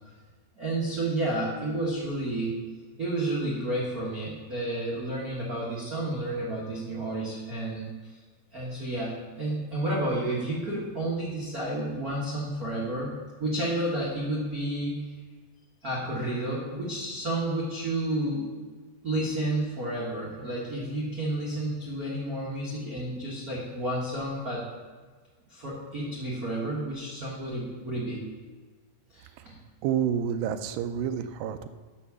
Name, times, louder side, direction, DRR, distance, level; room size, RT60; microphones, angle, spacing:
voice 1, 0.6-2.5 3.0-8.2 8.5-13.1 13.4-14.9 15.8-18.5 19.0-24.6 25.5-28.2 29.1-29.6, right 1 dB, 65° right, -6 dB, 0.9 m, -31 dB
voice 2, 29.8-31.7, right 8 dB, 80° right, 9 dB, 2.2 m, -29 dB
7.3 x 6.2 x 6.9 m, 1.4 s
omnidirectional pair, 4.2 m